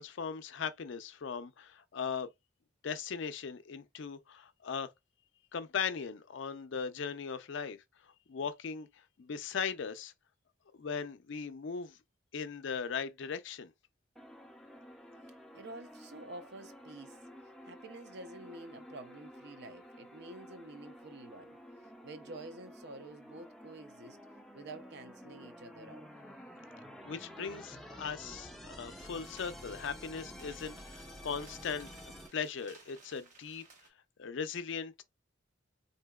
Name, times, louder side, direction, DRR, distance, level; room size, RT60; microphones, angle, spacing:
voice 1, 0.0-2.3 2.8-4.9 5.5-7.8 8.0-8.9 9.2-10.1 10.7-12.0 12.3-13.7 27.0-31.9 32.3-33.6 34.2-35.0, left 6 dB, 65° left, 0.4 m, -38 dB
sound 1, 14.2-32.3, equal, ahead, 0.4 m, -51 dB
voice 2, 15.5-17.2 17.6-24.2 24.5-26.1, right 2 dB, 55° right, 0.6 m, -49 dB
sound 2, 28.9-33.9, right 3 dB, 40° right, 1.0 m, -59 dB
3.8 x 2.7 x 2.3 m
head